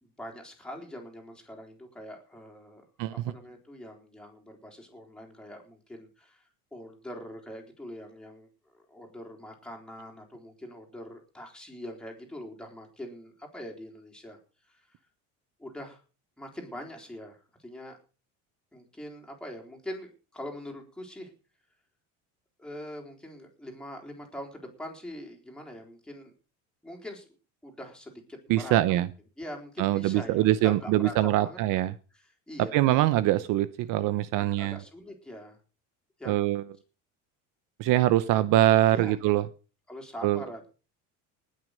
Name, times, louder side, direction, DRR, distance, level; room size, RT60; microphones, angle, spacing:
voice 1, 0.0-2.8 3.1-6.4 6.7-14.4 14.7-14.8 15.6-16.0 16.4-18.0 18.7-21.3 22.6-26.3 26.8-27.2 27.6-28.8 29.4-31.6 32.5-32.8 34.4-35.6 36.2-36.4 38.9-39.2 39.9-40.7, equal, ahead, 0 dB, 4.0 m, -43 dB
voice 2, 3.0-3.3 28.5-29.1 29.8-31.9 32.6-34.8 36.2-36.6 37.8-39.5 40.2-40.4, right 14 dB, 55° right, 15 dB, 0.9 m, -23 dB
19.5 x 6.6 x 6.6 m, 0.36 s
cardioid pair, 145°, 37 cm